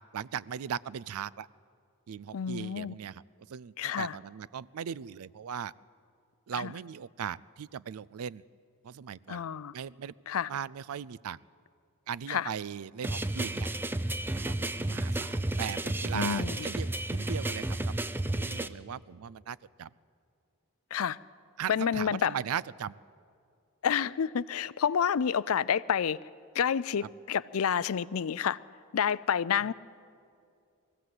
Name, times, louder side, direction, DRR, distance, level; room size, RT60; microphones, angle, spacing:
voice 1, 0.1-1.5 2.1-3.2 3.5-5.7 6.5-8.4 8.8-9.4 9.7-10.1 10.5-11.4 12.1-13.7 14.3-17.9 18.4-19.9 21.6-22.9 27.0-27.1, right 8 dB, 75° right, 0.4 m, -38 dB
voice 2, 2.3-2.9 3.8-4.2 6.6-6.7 9.3-9.7 10.3-10.5 12.3-12.5 16.1-16.6 20.9-21.2 21.7-22.3 23.8-26.2 26.6-28.6 28.9-29.7, left 7 dB, 70° left, 0.4 m, -29 dB
sound 1, 13.0-18.7, right 1 dB, 10° right, 0.5 m, -32 dB
22.5 x 15.5 x 7.9 m
head